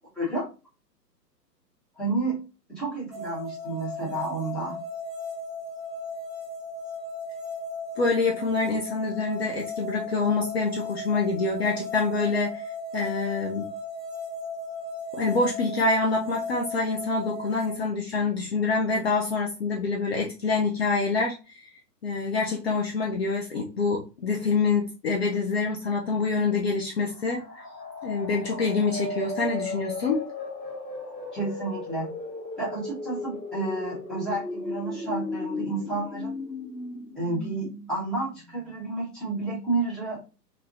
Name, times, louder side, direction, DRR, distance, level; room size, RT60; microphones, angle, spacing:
voice 1, 0.1-0.5 2.0-2.4 2.7-4.8 31.3-32.1 32.6-36.3 37.1-40.2, right 2 dB, ahead, -9 dB, 0.9 m, -30 dB
sound 1, 3.1-17.7, left 2 dB, 25° right, 1.3 m, -36 dB
voice 2, 8.0-12.6 12.9-13.7 15.1-21.7 22.0-27.4 28.0-30.2, left 4 dB, 40° left, -1 dB, 0.6 m, -26 dB
sound 2, 27.0-38.7, left 2 dB, 85° left, 1.1 m, -36 dB
3.5 x 2.4 x 2.4 m, 0.31 s
figure-of-eight pair, 125°, 50 cm